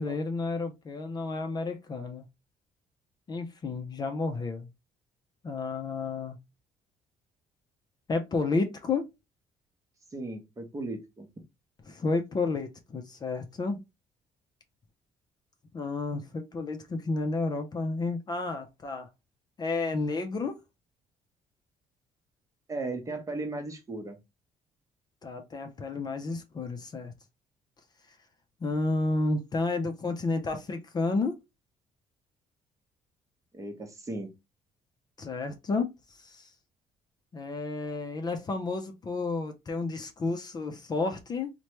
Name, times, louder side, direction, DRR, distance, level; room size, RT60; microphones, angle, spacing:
voice 1, 0.0-2.2 3.3-4.7 5.4-6.4 8.1-9.0 11.9-13.8 15.7-19.1 19.6-20.6 25.2-27.1 28.6-31.3 35.2-35.9 36.2-36.5 37.3-41.5, left 3 dB, 35° left, 0.5 m, -31 dB
voice 2, 10.1-11.3 22.7-24.2 33.5-34.3, right 2 dB, 25° right, 0.8 m, -36 dB
3.0 x 2.1 x 3.0 m
cardioid pair, 100°, 12 cm